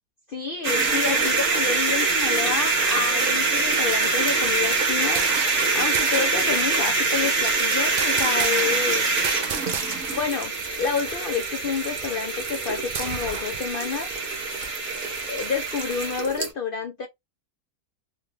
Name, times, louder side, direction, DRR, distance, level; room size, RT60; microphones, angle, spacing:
voice 1, 0.3-5.2 5.7-9.1 9.9-10.5 10.8-14.1 15.3-17.1, left 6 dB, 75° left, 0.5 m, -29 dB
sound 1, 0.6-16.5, right 4 dB, 40° right, 1.1 m, -24 dB
sound 2, 3.7-5.6 5.9-6.4 8.0-8.9 9.2-10.3 10.6-10.7 11.0-13.6, right 6 dB, 85° right, 0.4 m, -33 dB
3.8 x 2.3 x 3.0 m
omnidirectional pair, 1.7 m